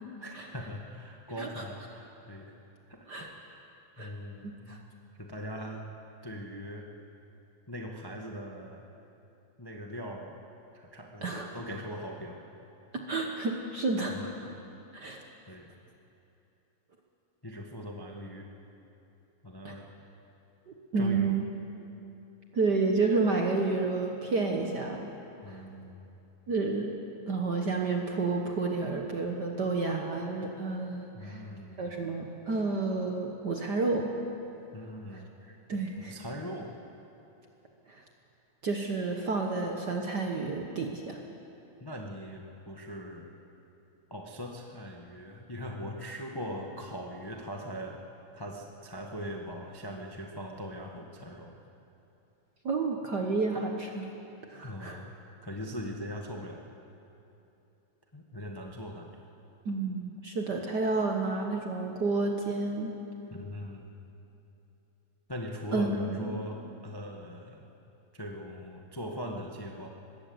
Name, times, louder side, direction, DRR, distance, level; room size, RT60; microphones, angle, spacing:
voice 1, 0.2-2.5 2.9-3.6 4.0-4.8 5.2-5.9 6.2-6.9 7.7-8.9 9.6-10.4 10.7-12.4 14.1-14.5 15.5-15.7 17.4-18.5 19.4-19.9 20.9-21.4 25.4-26.1 31.1-31.8 34.7-35.3 36.0-36.7 41.8-43.3 44.1-48.0 48.3-51.5 54.6-55.1 55.4-56.6 58.1-59.2 63.3-63.9 65.3-67.6 68.1-69.9, equal, 30° left, 1 dB, 0.4 m, -41 dB
voice 2, 4.4-4.8 11.2-11.5 12.9-14.3 14.9-15.2 19.6-19.7 20.9-21.5 22.5-25.2 25.5-25.6 26.5-26.9 27.3-31.4 31.8-34.1 35.1-35.2 35.7-36.1 37.9-38.0 38.6-41.2 52.6-54.0 54.4-55.0 59.6-63.0 65.7-66.4, right 3 dB, 55° right, 2 dB, 1.2 m, -30 dB
21.0 x 16.0 x 7.9 m, 2.9 s
omnidirectional pair, 3.4 m